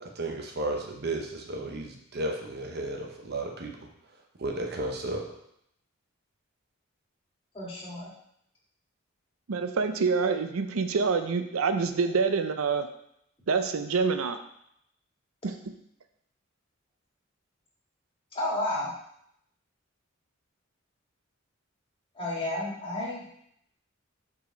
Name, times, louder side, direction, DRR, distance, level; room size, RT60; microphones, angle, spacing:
voice 1, 0.0-3.8 4.4-5.3, right 2 dB, 50° right, 2 dB, 1.0 m, -33 dB
voice 2, 7.5-8.1 18.3-18.9 22.1-23.3, left 1 dB, 25° left, -5 dB, 2.1 m, -31 dB
voice 3, 9.5-12.9 13.5-14.4 15.4-15.5, right 5 dB, 85° right, 9 dB, 0.5 m, -26 dB
5.6 x 4.8 x 5.0 m, 0.74 s
head